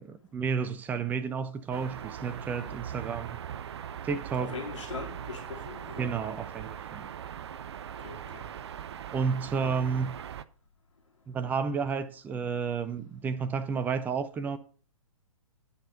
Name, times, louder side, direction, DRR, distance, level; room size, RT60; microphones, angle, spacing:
voice 1, 0.0-3.4 4.0-4.6 6.0-7.1 9.1-10.2 11.3-14.6, right 6 dB, 10° right, 0.6 m, -31 dB
sound 1, 1.7-10.4, right 9 dB, 50° right, 0.6 m, -40 dB
voice 2, 4.4-6.2 8.0-8.4, left 4 dB, 60° left, 3.6 m, -41 dB
11.0 x 5.6 x 6.8 m
figure-of-eight pair, 120°, 18 cm